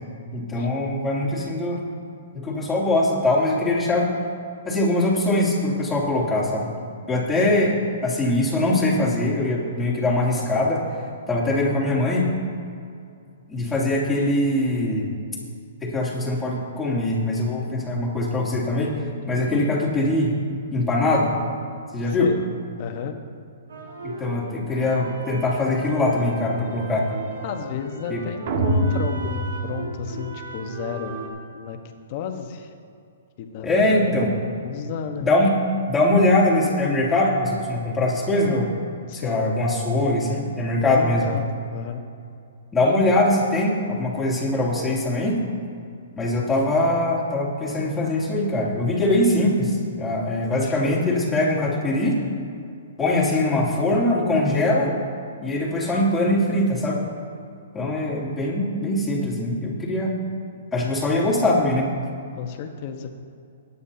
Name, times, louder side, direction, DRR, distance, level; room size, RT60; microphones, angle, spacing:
voice 1, 0.3-1.8 2.3-4.1 4.6-6.7 7.1-10.8 11.3-12.3 13.5-15.1 15.8-19.0 19.3-20.3 20.7-21.3 21.9-22.3 24.0-27.1 28.1-28.2 33.6-34.3 35.2-35.5 35.9-38.7 39.1-41.3 42.7-45.4 46.2-52.2 53.0-55.0 55.4-57.0 57.7-60.1 60.7-61.9, left 1 dB, 10° left, -6 dB, 3.0 m, -22 dB
voice 2, 19.4-19.8 22.0-22.4 22.8-23.1 27.4-31.2 31.5-31.8 32.1-32.7 33.4-34.2 34.6-35.3 39.1-39.4 40.8-42.0 50.5-51.0 62.3-63.1, left 7 dB, 45° left, 5 dB, 1.3 m, -32 dB
sound 1, 23.7-31.3, right 3 dB, 80° right, 2.6 m, -37 dB
sound 2, 28.5-30.6, right 1 dB, 55° right, 1.8 m, -25 dB
19.5 x 9.8 x 2.9 m, 2.4 s
hypercardioid pair, 140°, 0 cm